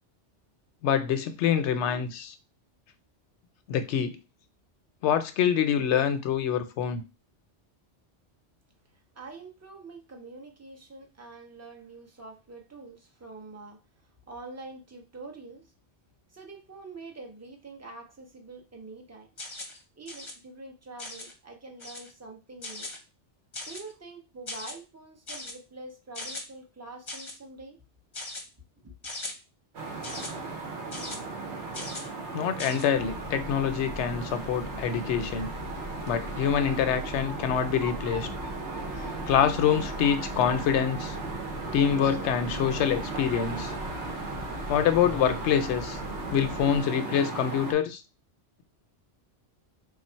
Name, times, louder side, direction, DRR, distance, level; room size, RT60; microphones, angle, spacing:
voice 1, 0.8-2.3 3.7-4.2 5.0-7.0 32.3-35.5 36.1-38.3 39.3-41.2 41.7-43.7 44.7-46.0 46.3-48.0, left 8 dB, 75° left, 0.9 m, -25 dB
voice 2, 9.1-13.8 14.3-15.7 16.3-19.3 20.0-22.9 23.7-27.8 28.8-28.9, right 3 dB, 20° right, 0.6 m, -45 dB
sound 1, 19.4-19.8 20.1-20.3 21.0-21.3 21.8-22.1 22.6-23.0 23.5-23.9 24.5-24.7 25.3-25.5 26.1-26.4 27.1-27.4 28.1-28.4 29.0-29.3 30.0-30.3 30.9-31.2 31.7-32.1 32.6-32.8, left 2 dB, 30° left, 0.7 m, -39 dB
sound 2, 29.7-47.7, right 4 dB, 75° right, 1.1 m, -37 dB
Train, 32.9-46.8, left 2 dB, 50° right, 1.1 m, -41 dB
3.4 x 2.5 x 4.3 m
omnidirectional pair, 1.2 m